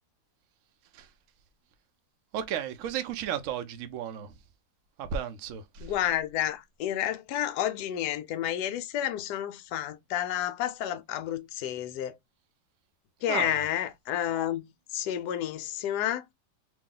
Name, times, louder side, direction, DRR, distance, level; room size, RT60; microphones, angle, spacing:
voice 1, 2.3-4.3 5.0-5.9 13.3-13.7, right 9 dB, 65° right, 0.8 m, -34 dB
voice 2, 5.8-12.2 13.2-16.3, left 11 dB, 70° left, 1.0 m, -30 dB
3.0 x 2.8 x 3.7 m
omnidirectional pair, 2.1 m